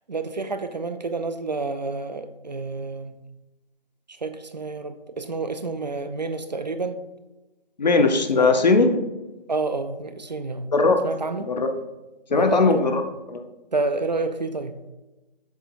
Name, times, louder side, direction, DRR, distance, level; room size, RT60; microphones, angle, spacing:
voice 1, 0.1-3.1 4.2-7.0 8.3-8.5 9.5-10.7 11.0-11.5 12.3-12.8 13.7-14.7, right 3 dB, 45° right, 9 dB, 0.4 m, -29 dB
voice 2, 7.8-9.0 10.7-11.0 11.4-11.7 12.3-13.0 13.3-13.4, left 3 dB, 45° left, 6 dB, 0.6 m, -19 dB
7.0 x 3.4 x 4.4 m, 1.1 s
figure-of-eight pair, 150°, 30 cm